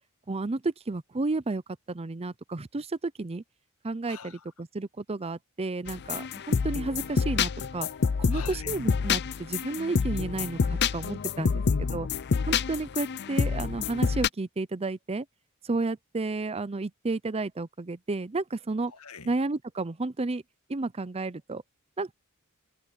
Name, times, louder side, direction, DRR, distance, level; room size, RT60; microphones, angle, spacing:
voice 1, 0.3-1.6 1.9-3.4 3.8-7.9 8.2-11.5 11.9-12.1 12.5-15.3 15.6-18.9 19.3-20.4 20.7-21.6 22.0-22.1, right 3 dB, 30° right, 0.6 m, -32 dB
voice 2, 4.1-4.4 8.3-8.8 11.4-12.1 18.9-19.3, left 3 dB, 85° left, 1.7 m, -40 dB
sound 1, 5.9-14.3, left 5 dB, 50° left, 0.5 m, -28 dB
open air
head